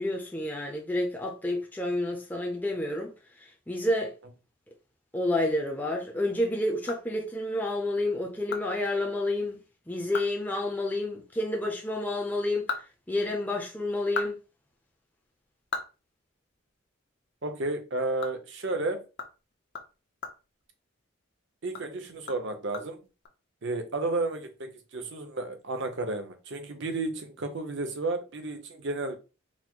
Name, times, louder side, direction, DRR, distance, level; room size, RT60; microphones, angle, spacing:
voice 1, 0.0-3.1 3.4-4.1 5.1-9.6 9.9-12.8 13.1-14.4, left 1 dB, 10° left, 0.6 m, -29 dB
sound 1, 6.6-7.6 8.0-8.1 8.5-8.7 9.0-9.1 9.5-9.6 10.0-10.4 10.7-10.8 12.3-13.6 13.9-16.9 17.2-17.3 17.7-21.3 21.6-23.3, left 4 dB, 55° left, 0.8 m, -40 dB
voice 2, 17.4-19.0 21.6-23.0 23.6-29.1, right 2 dB, 60° right, 0.8 m, -32 dB
4.2 x 2.0 x 4.5 m
head